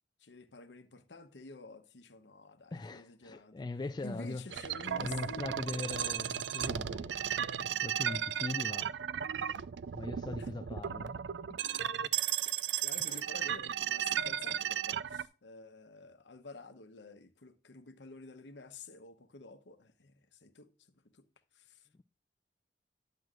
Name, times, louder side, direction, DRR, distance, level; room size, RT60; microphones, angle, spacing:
voice 1, 0.2-3.6 4.0-5.9 10.4-10.5 11.5-11.7 12.0-20.7 21.1-21.2 21.5-21.9, left 3 dB, 85° left, 0.9 m, -50 dB
voice 2, 2.7-4.4 4.9-7.2 7.6-9.0 9.9-11.2 13.0-13.2, left 3 dB, 25° left, 0.3 m, -41 dB
sound 1, 4.5-15.3, right 9 dB, 85° right, 0.4 m, -35 dB
10.5 x 7.7 x 2.4 m
head